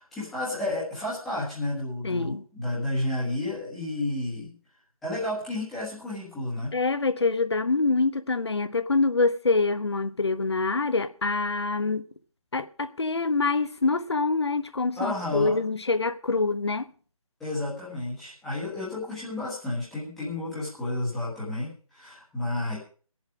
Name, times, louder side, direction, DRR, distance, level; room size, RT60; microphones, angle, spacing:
voice 1, 0.0-4.5 5.0-6.8 15.0-15.6 17.4-22.8, left 1 dB, ahead, 1.4 m, -31 dB
voice 2, 2.0-2.5 6.7-12.0 12.5-16.9, left 3 dB, 50° left, 0.9 m, -25 dB
20.5 x 7.2 x 4.9 m
figure-of-eight pair, 180°, 18 cm